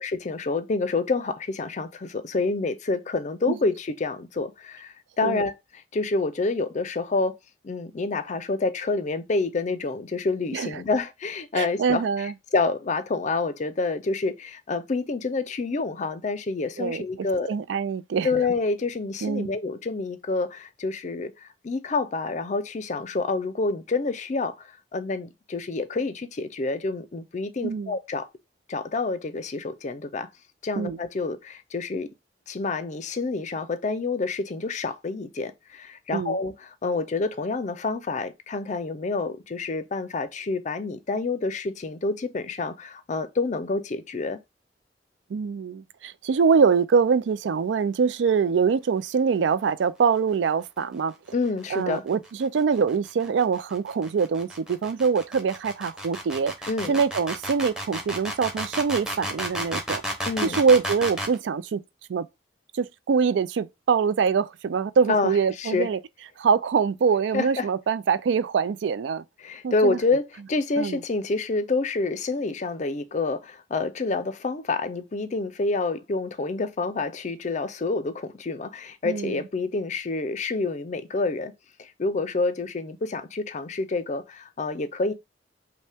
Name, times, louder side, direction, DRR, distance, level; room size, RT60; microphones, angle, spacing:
voice 1, 0.0-5.5 5.9-7.4 7.6-17.5 18.2-28.3 28.7-30.3 30.6-32.1 32.5-44.4 51.3-52.0 56.7-57.0 60.3-60.6 65.1-65.9 67.3-67.7 69.4-81.5 81.8-85.1, left 3 dB, 40° left, 0.5 m, -28 dB
voice 2, 11.5-12.3 16.8-18.3 19.2-19.5 27.6-27.9 30.8-31.0 36.1-36.4 45.3-51.1 51.7-56.5 56.9-60.0 60.4-61.8 62.1-62.3 62.7-66.0 66.4-69.2 69.6-70.0 70.8-71.0 79.0-79.4, right 6 dB, 85° right, 0.4 m, -24 dB
sound 1, 52.1-61.4, equal, 5° right, 0.8 m, -32 dB
5.4 x 2.1 x 3.4 m
head